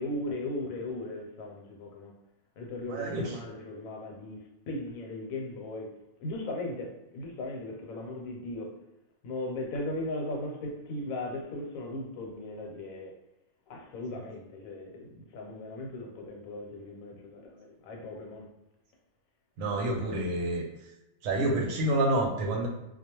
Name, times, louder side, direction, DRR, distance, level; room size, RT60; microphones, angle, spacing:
voice 1, 0.0-2.1 2.6-4.4 4.7-5.9 6.2-8.8 9.2-13.1 13.7-18.5, left 2 dB, 80° left, 1.0 m, -37 dB
voice 2, 2.9-3.3 19.6-20.6 21.2-22.7, right 1 dB, 75° right, 1.0 m, -28 dB
2.3 x 2.2 x 2.9 m
omnidirectional pair, 1.5 m